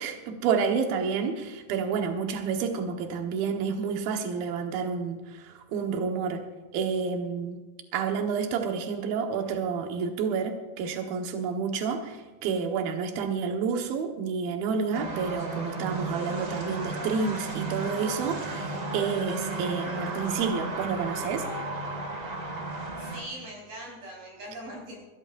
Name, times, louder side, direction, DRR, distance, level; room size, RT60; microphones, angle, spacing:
voice 1, 0.0-6.4 6.7-7.6 7.9-21.4, right 5 dB, 70° right, 4 dB, 3.1 m, -29 dB
sound 1, 14.9-23.2, right 3 dB, 30° right, 1.6 m, -34 dB
voice 2, 23.0-25.0, right 1 dB, 50° right, -4 dB, 6.5 m, -41 dB
21.5 x 16.5 x 2.6 m, 1.2 s
omnidirectional pair, 4.7 m